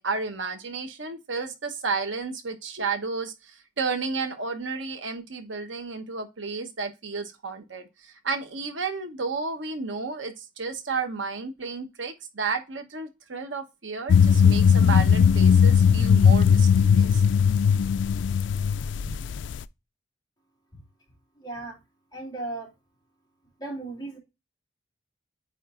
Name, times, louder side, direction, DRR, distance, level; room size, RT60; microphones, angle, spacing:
voice 1, 0.0-17.2, right 4 dB, 85° right, 1.1 m, -32 dB
sound 1, 14.1-19.6, left 7 dB, 70° left, 0.3 m, -18 dB
voice 2, 21.4-21.8 22.1-22.7 23.6-24.2, right 2 dB, 20° left, 2.5 m, -35 dB
8.4 x 3.3 x 3.7 m
head